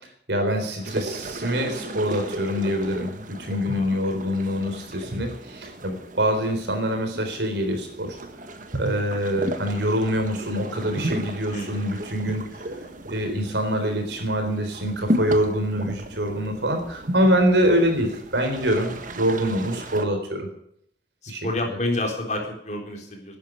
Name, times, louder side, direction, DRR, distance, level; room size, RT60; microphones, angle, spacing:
voice 1, 0.3-8.2 8.7-12.6 13.1-20.5 21.3-21.5, equal, 75° right, 5 dB, 4.0 m, -25 dB
sound 1, 0.8-20.0, right 1 dB, 45° right, 1.6 m, -34 dB
voice 2, 11.5-11.9 17.6-17.7 21.2-23.4, left 1 dB, 40° left, 2 dB, 3.8 m, -29 dB
12.0 x 10.0 x 9.5 m, 0.69 s
head